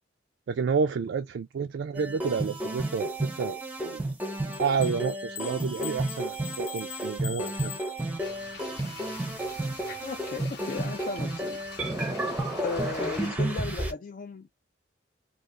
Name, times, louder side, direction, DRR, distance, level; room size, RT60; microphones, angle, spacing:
voice 1, 0.5-4.0 4.6-7.7, right 5 dB, 80° right, 0.3 m, -30 dB
sound 1, 2.0-13.9, right 1 dB, 10° right, 0.6 m, -32 dB
sound 2, 4.5-8.5, left 11 dB, 80° left, 0.6 m, -42 dB
sound 3, 8.2-13.3, left 4 dB, 60° left, 0.9 m, -45 dB
voice 2, 10.0-11.6 12.6-14.5, left 4 dB, 45° left, 0.3 m, -35 dB
2.5 x 2.4 x 3.3 m
head